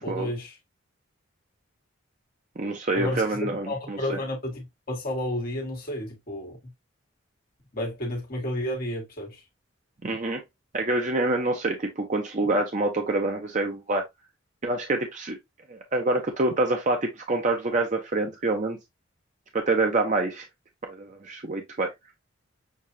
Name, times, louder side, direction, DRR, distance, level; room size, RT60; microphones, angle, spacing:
voice 1, 0.0-0.5 2.9-6.6 7.7-9.4, left 1 dB, 45° left, 1.5 m, -31 dB
voice 2, 2.6-4.2 10.0-10.4 10.7-14.0 14.6-15.4 15.7-18.8 19.5-20.4 20.8-21.9, right 2 dB, 35° right, 0.6 m, -26 dB
6.6 x 2.3 x 2.7 m
head